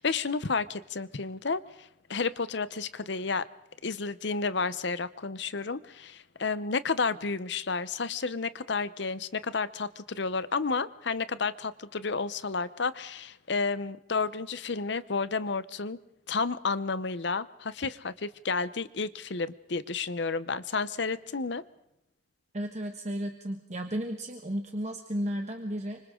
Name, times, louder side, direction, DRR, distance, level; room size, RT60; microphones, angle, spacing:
voice 1, 0.0-3.4 3.8-16.0 16.3-21.6, left 4 dB, 65° left, 15 dB, 0.9 m, -31 dB
voice 2, 22.5-26.0, equal, 35° right, 4 dB, 1.4 m, -33 dB
29.5 x 25.5 x 3.8 m, 0.80 s
head